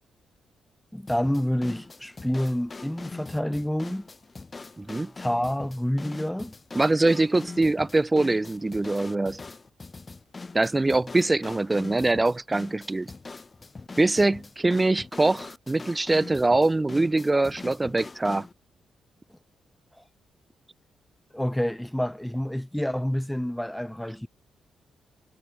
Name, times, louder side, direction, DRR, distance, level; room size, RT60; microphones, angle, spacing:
voice 1, 0.9-4.0 5.2-6.5 21.3-24.3, equal, 5° left, 1.9 m, -28 dB
sound 1, 1.1-18.5, left 3 dB, 35° left, 5.4 m, -42 dB
voice 2, 4.8-5.1 6.7-9.4 10.5-13.1 14.0-18.5, right 2 dB, 25° right, 0.6 m, -23 dB
hypercardioid pair, 45°, 0 cm